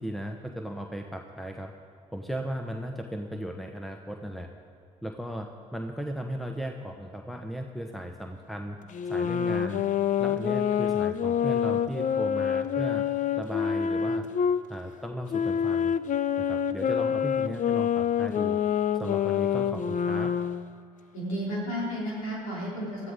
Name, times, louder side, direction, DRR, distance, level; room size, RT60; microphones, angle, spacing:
voice 1, 0.0-1.7 2.1-4.5 5.0-8.8 9.1-9.8 10.2-13.0 13.4-14.3 14.7-15.9 16.4-18.6 19.0-20.3, equal, ahead, 3 dB, 1.2 m, -36 dB
sound 1, 8.9-14.6 15.3-20.7, left 8 dB, 50° left, 0.7 m, -27 dB
voice 2, 21.1-23.1, equal, 90° left, -4 dB, 3.7 m, -32 dB
19.0 x 13.5 x 3.8 m, 2.4 s
hypercardioid pair, 50°, 17 cm